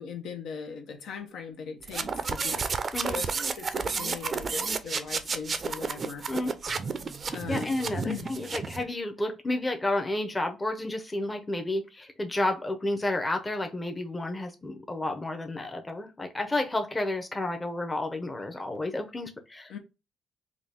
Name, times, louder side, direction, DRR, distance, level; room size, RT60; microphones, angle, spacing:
voice 1, 0.0-2.6 3.0-6.2 7.3-8.3 19.7-19.8, left 6 dB, 80° left, 0.8 m, -39 dB
sound 1, 1.8-8.8, right 5 dB, 40° right, 0.4 m, -31 dB
voice 2, 7.5-19.8, left 2 dB, 20° left, 0.7 m, -31 dB
3.8 x 2.3 x 3.4 m
cardioid pair, 90°, 0 cm